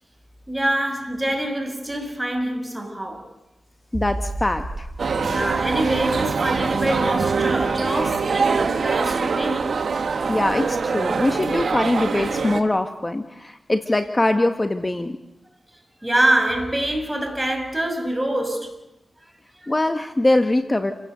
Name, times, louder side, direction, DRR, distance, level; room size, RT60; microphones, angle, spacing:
voice 1, 0.5-3.3 5.0-9.8 16.0-18.7 19.6-19.7, right 1 dB, 15° right, 5.9 m, -25 dB
voice 2, 3.9-4.9 10.3-15.2 19.7-20.9, left 2 dB, 25° left, 1.5 m, -22 dB
sound 1, 3.9-11.2, right 1 dB, 45° right, 4.8 m, -36 dB
sound 2, 5.0-12.6, right 5 dB, 70° right, 1.9 m, -23 dB
29.5 x 16.5 x 7.9 m
cardioid pair, 55°, 0 cm